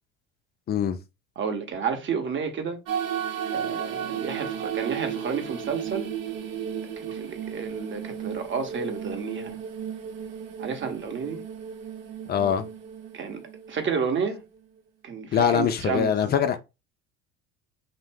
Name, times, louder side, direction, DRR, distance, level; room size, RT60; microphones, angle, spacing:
voice 1, 1.4-2.8 3.5-6.1 7.0-9.6 10.6-11.4 13.1-13.4 13.7-14.4 15.0-16.1, right 6 dB, 30° right, 0.9 m, -31 dB
sound 1, 2.9-14.7, right 8 dB, 85° right, 0.8 m, -34 dB
voice 2, 12.3-12.6 15.3-16.6, left 8 dB, 25° left, 0.4 m, -23 dB
2.7 x 2.1 x 3.3 m
hypercardioid pair, 85°, 39 cm